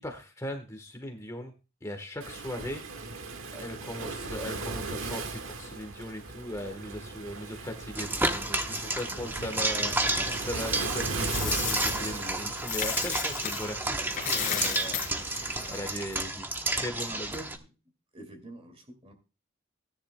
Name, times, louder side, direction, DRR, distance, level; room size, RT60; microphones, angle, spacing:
voice 1, 0.0-1.5 1.8-3.3 3.5-17.3, equal, 15° left, 5 dB, 1.2 m, -39 dB
Waves surf, 2.2-15.8, right 3 dB, 85° right, 1.6 m, -38 dB
sound 1, 8.0-17.6, right 2 dB, 10° right, 0.9 m, -31 dB
Coin (dropping), 10.9-13.7 14.0-16.3, left 8 dB, 40° left, 2.8 m, -34 dB
voice 2, 17.0-17.7 18.1-19.1, right 1 dB, 30° right, 7 dB, 2.3 m, -46 dB
17.0 x 10.5 x 2.2 m, 0.32 s
head